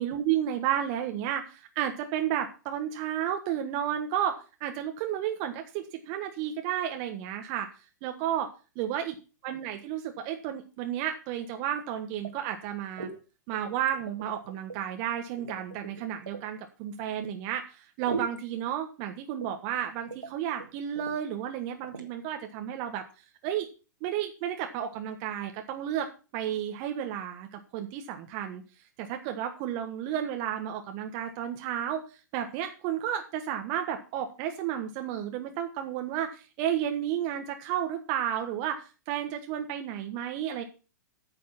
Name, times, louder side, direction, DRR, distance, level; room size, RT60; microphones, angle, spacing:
voice 1, 0.0-7.7 8.0-8.5 8.8-9.0 9.4-13.1 13.5-23.0 23.4-23.7 24.0-26.1 26.3-28.6 29.0-32.0 32.3-40.6, right 10 dB, 40° right, 5 dB, 1.4 m, -32 dB
sound 1, 12.2-12.7 13.0-13.2 13.5-14.8 15.4-16.5 18.1-18.4 19.4-19.8 20.1-20.3 20.6-20.7 20.9-21.2 21.8-22.1, right 4 dB, 90° right, 2.2 m, -39 dB
9.7 x 6.9 x 5.8 m, 0.33 s
hypercardioid pair, 110°, 10 cm